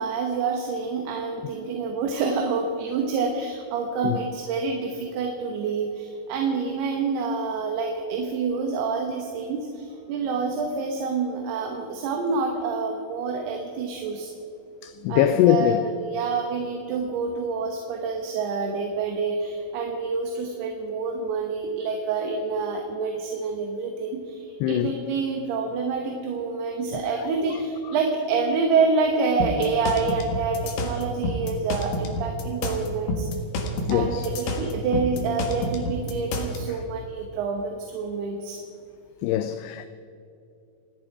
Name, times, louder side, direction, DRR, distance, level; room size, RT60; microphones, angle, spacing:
voice 1, 0.0-14.3 15.1-33.3 33.9-38.6, right 4 dB, 70° right, 3.0 m, -27 dB
voice 2, 14.8-15.8 24.6-25.0 33.9-34.3 39.2-39.9, left 12 dB, 80° left, 2.5 m, -22 dB
sound 1, 29.4-36.6, left 1 dB, 65° left, 3.1 m, -29 dB
28.5 x 10.5 x 4.7 m
omnidirectional pair, 5.1 m